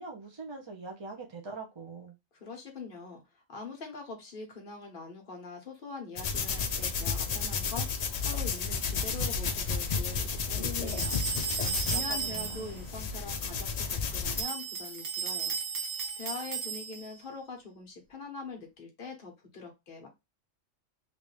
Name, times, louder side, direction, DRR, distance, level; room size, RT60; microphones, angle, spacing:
voice 1, 0.0-2.1 11.6-12.7, right 4 dB, 35° right, 1 dB, 0.4 m, -43 dB
voice 2, 2.3-11.3 11.8-15.6 16.2-20.1, left 4 dB, 45° left, 2 dB, 1.2 m, -43 dB
sound 1, 6.2-14.4, left 5 dB, 80° left, 0.3 m, -32 dB
sound 2, 10.9-12.8 14.3-17.2, right 6 dB, 70° right, 1.2 m, -35 dB
3.3 x 2.6 x 3.1 m, 0.22 s
omnidirectional pair, 1.3 m